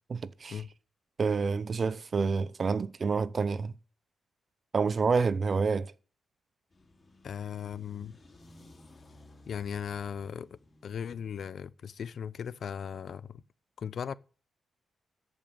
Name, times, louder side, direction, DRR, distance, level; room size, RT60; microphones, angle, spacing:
voice 1, 0.1-0.6 1.2-3.7 4.7-5.9, right 5 dB, 45° right, 0.6 m, -28 dB
sound 1, 6.7-11.7, left 2 dB, 35° left, 3.1 m, -57 dB
voice 2, 7.2-8.2 9.5-13.4 13.8-14.1, left 7 dB, 65° left, 0.6 m, -38 dB
14.0 x 5.4 x 8.8 m
cardioid pair, 90°, 0 cm